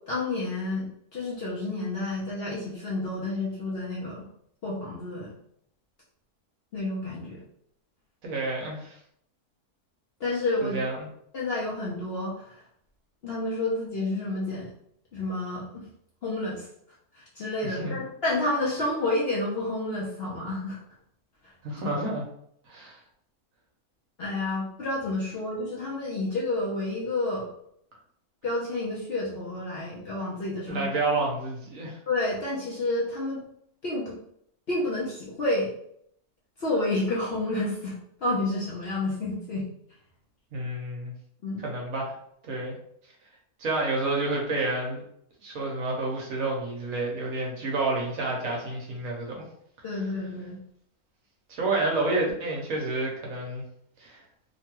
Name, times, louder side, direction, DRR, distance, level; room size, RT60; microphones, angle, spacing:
voice 1, 0.1-4.3 4.6-5.3 6.7-7.4 10.2-10.8 11.3-12.6 13.2-14.7 15.1-15.8 16.2-16.7 17.1-20.8 21.8-22.0 24.2-27.5 28.4-30.9 32.1-33.4 33.8-34.2 34.7-35.7 36.6-39.7 41.4-41.6 49.8-50.6, left 2 dB, 55° left, -6 dB, 0.8 m, -30 dB
voice 2, 8.2-9.0 10.6-11.1 17.8-18.0 21.6-22.2 22.7-23.0 30.7-32.0 40.5-41.1 41.6-42.1 42.4-42.7 43.6-45.0 45.4-49.4 51.5-53.6 54.0-54.2, right 2 dB, 65° right, -1 dB, 1.1 m, -29 dB
2.9 x 2.2 x 3.0 m, 0.70 s
omnidirectional pair, 1.6 m